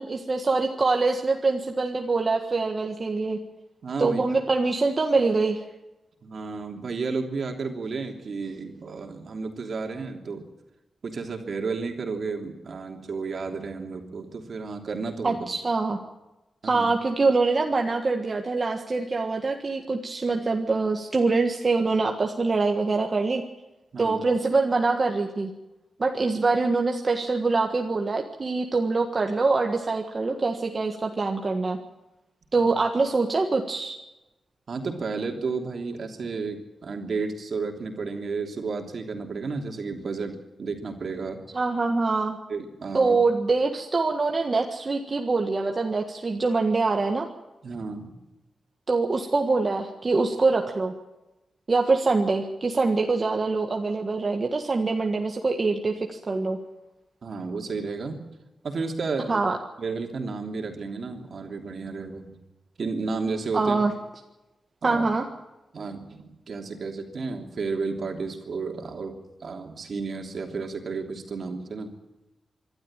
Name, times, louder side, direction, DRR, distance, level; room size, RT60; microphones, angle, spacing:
voice 1, 0.0-3.4 4.0-5.6 15.2-16.0 16.6-23.4 24.0-25.5 26.0-31.8 32.5-34.0 41.5-42.4 42.9-47.3 48.9-50.9 51.7-56.6 59.3-59.6 63.5-63.9 64.8-65.2, right 3 dB, 35° right, 2 dB, 1.6 m, -24 dB
voice 2, 3.8-4.2 6.2-10.5 11.0-15.5 16.6-16.9 23.9-24.2 32.6-32.7 34.7-41.4 42.5-43.2 47.6-48.2 57.2-58.2 58.6-59.4 59.8-62.3 62.8-63.8 64.8-65.1 65.7-69.1 69.4-71.9, right 4 dB, 60° right, 3 dB, 3.1 m, -32 dB
25.5 x 12.5 x 9.0 m, 1.0 s
wide cardioid pair, 100°, 0 cm